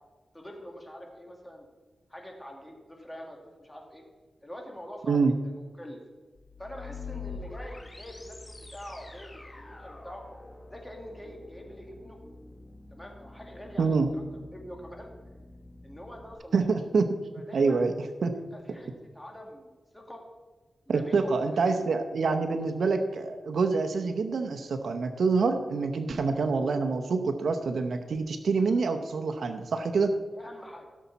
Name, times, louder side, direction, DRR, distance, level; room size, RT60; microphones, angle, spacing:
voice 1, 0.3-1.7 2.1-4.0 4.4-6.0 6.6-10.2 10.7-12.2 12.9-15.1 15.8-16.8 17.3-17.8 18.3-20.2 20.9-21.9 30.3-30.9, equal, 15° left, 1 dB, 2.3 m, -45 dB
sound 1, 6.4-16.3, left 3 dB, 30° left, 1.4 m, -45 dB
voice 2, 16.5-17.1 17.5-17.9 18.2-18.3 20.9-30.1, right 4 dB, 85° right, 6 dB, 0.9 m, -26 dB
16.0 x 7.0 x 4.1 m, 1.3 s
cardioid pair, 70°, 0 cm